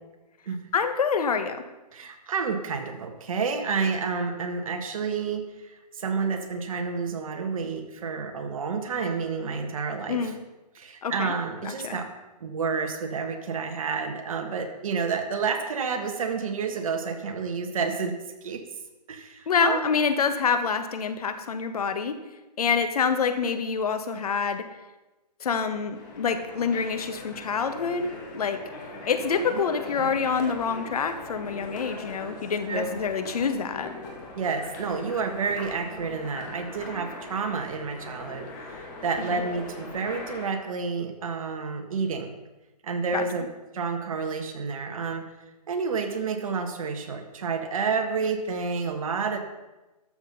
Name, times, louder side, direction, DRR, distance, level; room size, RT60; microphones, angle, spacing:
voice 1, 0.7-1.6 10.1-10.3 11.0-11.3 11.6-12.0 19.5-22.2 22.6-24.7 25.4-28.6 29.1-33.9 39.3-39.4 43.1-43.2, left 6 dB, 60° left, 9 dB, 1.4 m, -26 dB
voice 2, 1.9-10.3 10.7-12.1 12.4-18.6 19.1-20.0 29.5-29.6 30.0-30.1 32.7-33.0 34.4-38.5 38.8-42.3 42.8-45.2 45.7-49.4, right 5 dB, 55° right, 5 dB, 1.7 m, -30 dB
sound 1, 25.9-40.5, left 2 dB, 30° left, 2.1 m, -41 dB
13.0 x 7.3 x 5.5 m, 1.1 s
hypercardioid pair, 160°, 21 cm